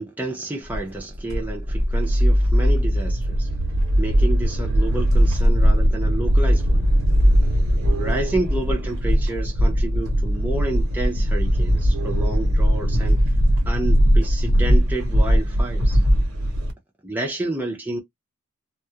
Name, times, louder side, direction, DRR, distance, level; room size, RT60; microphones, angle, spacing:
voice 1, 0.0-3.5 4.0-6.8 8.0-13.2 13.7-16.0 17.0-18.0, right 2 dB, 10° right, 0.5 m, -30 dB
sound 1, 0.7-16.7, equal, 65° right, 0.9 m, -19 dB
2.3 x 2.0 x 2.7 m
head